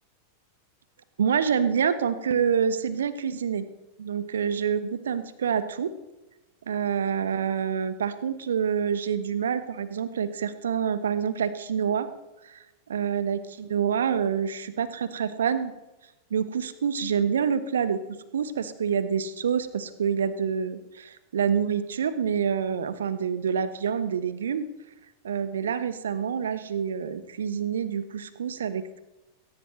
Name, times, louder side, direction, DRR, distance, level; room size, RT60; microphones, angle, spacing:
voice 1, 1.2-3.7 4.0-5.9 6.7-12.1 12.4-15.7 16.3-18.0 18.3-24.6 25.2-29.0, right 7 dB, 65° right, 13 dB, 1.1 m, -27 dB
18.5 x 18.0 x 3.2 m, 1.0 s
figure-of-eight pair, 90°, 0 cm